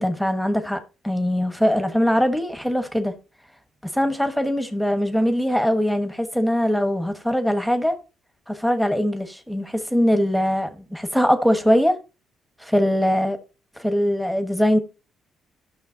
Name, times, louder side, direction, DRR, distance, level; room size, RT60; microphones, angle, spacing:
voice 1, 0.0-3.1 3.9-7.9 8.5-12.0 12.6-13.4 13.8-14.8, equal, ahead, 1.3 m, -21 dB
15.0 x 6.1 x 2.8 m
cardioid pair, 90°, 0 cm